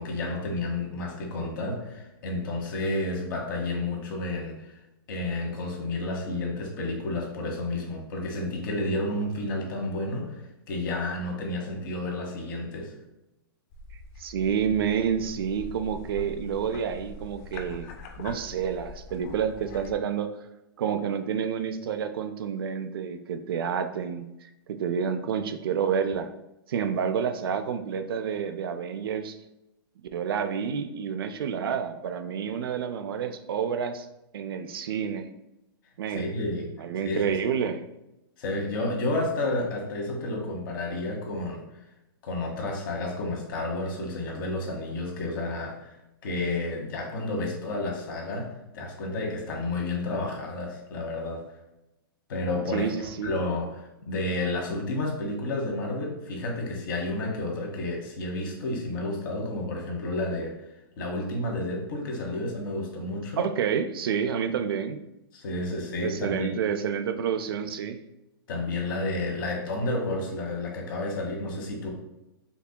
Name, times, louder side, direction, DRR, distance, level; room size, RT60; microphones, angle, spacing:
voice 1, 0.0-4.7 5.1-10.3 10.7-12.9 36.1-36.7 37.0-37.3 38.4-41.6 42.2-46.0 46.2-51.4 52.3-60.5 61.0-63.4 65.3-66.5 68.5-71.9, left 2 dB, 60° left, 0 dB, 1.2 m, -31 dB
sound 1, 13.7-20.0, left 2 dB, 40° left, 0.4 m, -43 dB
voice 2, 14.2-17.9 18.2-20.3 20.8-24.3 24.7-26.3 26.7-29.4 30.1-34.1 34.3-35.3 36.0-36.3 36.8-37.8 52.7-53.3 63.4-65.0 66.0-68.0, right 7 dB, 75° right, 9 dB, 0.4 m, -29 dB
4.5 x 2.8 x 2.2 m, 0.90 s
hypercardioid pair, 145°, 12 cm